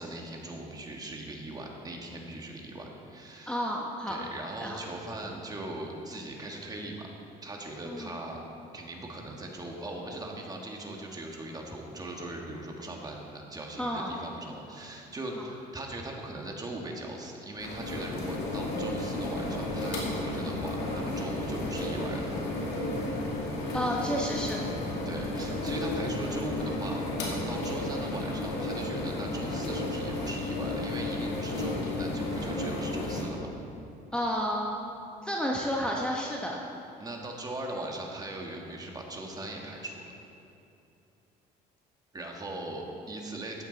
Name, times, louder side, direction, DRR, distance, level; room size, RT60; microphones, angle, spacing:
voice 1, 0.0-3.6 4.1-7.1 7.4-8.4 8.7-22.3 25.0-33.5 37.0-40.1 42.1-43.6, right 1 dB, 20° right, 0 dB, 1.7 m, -40 dB
voice 2, 3.5-4.2 4.6-4.8 7.9-8.1 13.8-14.1 23.7-24.7 34.1-34.8 35.2-36.6, equal, 5° left, -2 dB, 1.0 m, -31 dB
sound 1, 17.6-33.2, left 2 dB, 80° left, 2.3 m, -32 dB
13.5 x 9.0 x 4.0 m, 2.7 s
cardioid pair, 110°, 17 cm